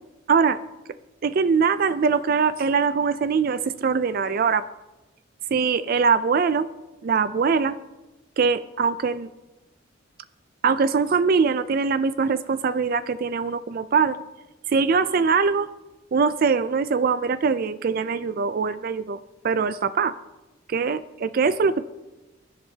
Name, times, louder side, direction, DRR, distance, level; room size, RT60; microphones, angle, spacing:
voice 1, 0.3-0.6 1.2-4.6 5.5-6.7 7.0-7.8 8.4-9.3 10.6-14.2 14.7-15.7 16.1-19.2 19.4-20.1 20.7-21.8, right 5 dB, 50° right, 14 dB, 0.4 m, -22 dB
23.0 x 11.0 x 2.8 m, 1.1 s
head